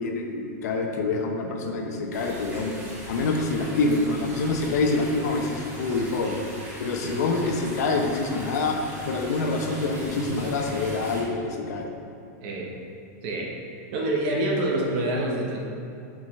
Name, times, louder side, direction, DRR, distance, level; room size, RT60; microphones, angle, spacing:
voice 1, 0.0-2.7 3.1-6.4 6.8-8.8 9.1-11.9, left 3 dB, 70° left, 2 dB, 0.9 m, -26 dB
sound 1, 2.1-11.2, right 1 dB, 20° right, 1.4 m, -40 dB
voice 2, 12.4-12.7 13.2-13.5 13.9-15.6, right 1 dB, 40° right, -1 dB, 1.0 m, -27 dB
7.4 x 5.0 x 3.2 m, 2.6 s
supercardioid pair, 175°, 9 cm